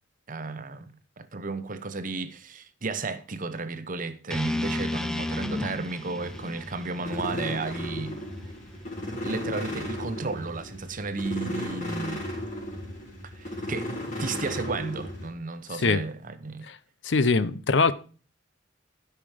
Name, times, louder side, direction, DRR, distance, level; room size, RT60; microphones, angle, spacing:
voice 1, 0.3-8.2 9.2-12.3 13.4-13.9 14.2-16.7, right 3 dB, 45° right, 0.9 m, -33 dB
sound 1, 4.3-8.4, left 1 dB, 5° left, 0.6 m, -33 dB
sound 2, 6.2-15.3, left 1 dB, 45° left, 4.1 m, -35 dB
voice 2, 17.0-17.9, left 4 dB, 70° left, 0.7 m, -22 dB
12.0 x 5.8 x 4.9 m
head